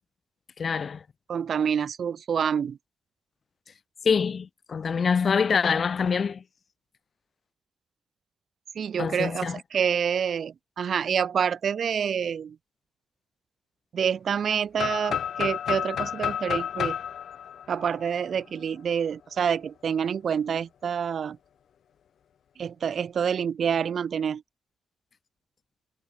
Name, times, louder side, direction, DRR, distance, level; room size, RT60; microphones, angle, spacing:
voice 1, 0.6-1.0 4.0-6.4 9.0-9.6, left 6 dB, 45° left, 1.9 m, -25 dB
voice 2, 1.3-2.8 8.7-12.6 13.9-17.0 17.7-21.4 22.6-24.4, right 7 dB, 65° right, 1.2 m, -27 dB
sound 1, 14.8-18.6, left 9 dB, 85° left, 2.9 m, -31 dB
wide cardioid pair, 155°, 0 cm